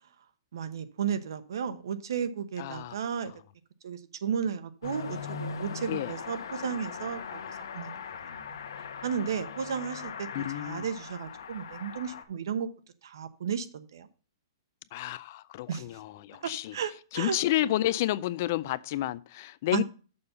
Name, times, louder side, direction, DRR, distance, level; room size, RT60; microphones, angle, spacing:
voice 1, 0.5-3.3 3.8-7.9 9.0-12.7 13.0-14.1 15.7-15.8 16.4-17.4 19.7-19.8, right 7 dB, 70° right, 1.0 m, -34 dB
voice 2, 2.6-2.9 5.9-6.1 10.3-10.8 14.9-16.7 17.1-19.8, left 14 dB, 35° left, 0.3 m, -30 dB
Car passing by / Accelerating revving vroom, 4.8-12.2, left 6 dB, 75° left, 1.2 m, -40 dB
6.8 x 5.3 x 6.7 m
hypercardioid pair, 170°, 2 cm